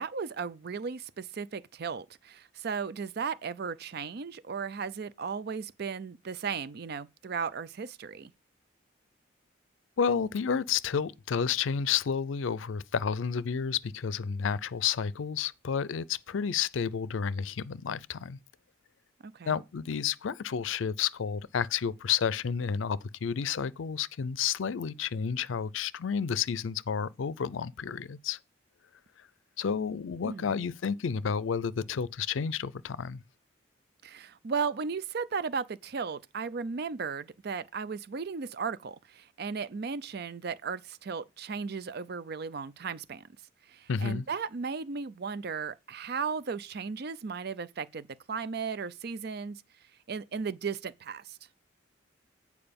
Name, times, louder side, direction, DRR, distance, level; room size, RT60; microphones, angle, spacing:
voice 1, 0.0-8.3 19.2-19.6 30.2-30.6 34.0-43.3 43.7-49.6 50.1-51.4, right 5 dB, 55° right, 0.5 m, -36 dB
voice 2, 10.0-18.4 19.5-28.4 29.6-33.2 43.9-44.3, left 7 dB, 75° left, 0.5 m, -31 dB
8.9 x 4.7 x 5.2 m
head